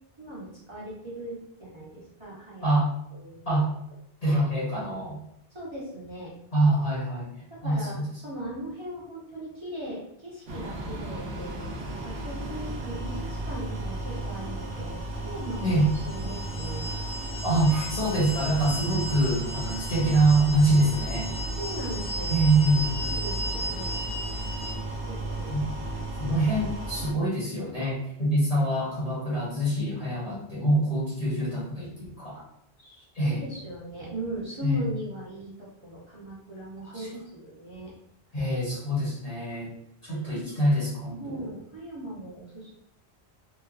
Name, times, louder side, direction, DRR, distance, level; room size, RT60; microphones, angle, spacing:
voice 1, 0.2-2.7 3.1-3.6 5.5-6.3 7.5-11.6 12.0-17.0 21.6-22.5 23.0-24.0 25.1-25.5 32.8-37.9 39.7-40.6 41.2-42.7, right 1 dB, 30° right, -8 dB, 0.8 m, -39 dB
voice 2, 4.2-5.2 6.5-8.1 15.6-15.9 17.4-21.3 22.3-23.0 25.5-25.6 26.2-32.4 33.1-33.4 34.6-34.8 36.8-37.1 38.3-39.7 40.0-41.2, right 1 dB, 40° left, -7 dB, 0.9 m, -25 dB
sound 1, 10.5-27.1, right 1 dB, 70° right, 0.9 m, -34 dB
Sword Drone, 15.7-24.7, equal, 80° left, 0.9 m, -36 dB
3.1 x 2.2 x 2.3 m, 0.75 s
omnidirectional pair, 1.1 m